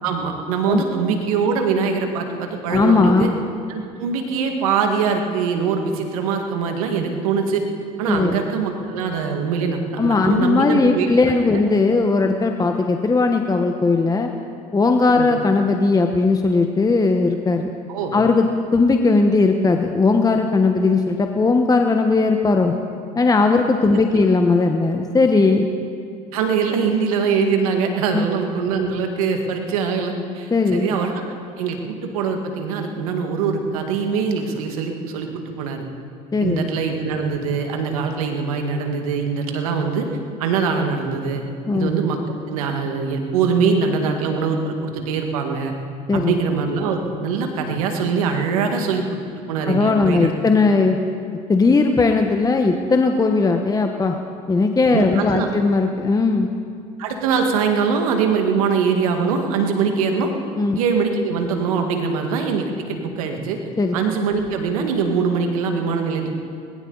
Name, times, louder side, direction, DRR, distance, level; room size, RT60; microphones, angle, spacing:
voice 1, 0.0-3.3 3.7-7.6 8.0-11.6 15.1-15.3 17.9-18.2 23.9-24.0 26.3-31.1 31.6-35.8 36.4-40.1 40.4-41.4 41.7-42.2 42.5-45.7 46.1-49.2 49.5-50.3 54.9-55.5 57.0-60.3 60.7-63.6 63.9-66.3, right 5 dB, 90° right, 4 dB, 1.8 m, -22 dB
voice 2, 2.7-3.3 8.1-8.4 10.0-14.3 14.7-17.7 18.1-18.5 18.7-22.7 23.2-25.7 28.1-28.3 30.5-30.9 36.3-36.7 41.7-41.9 46.1-46.4 49.7-51.0 51.5-54.2 54.5-56.5 60.6-60.8 63.8-63.9, left 3 dB, 20° left, 4 dB, 1.1 m, -18 dB
20.0 x 16.5 x 4.0 m, 2.3 s
supercardioid pair, 80°, 18 cm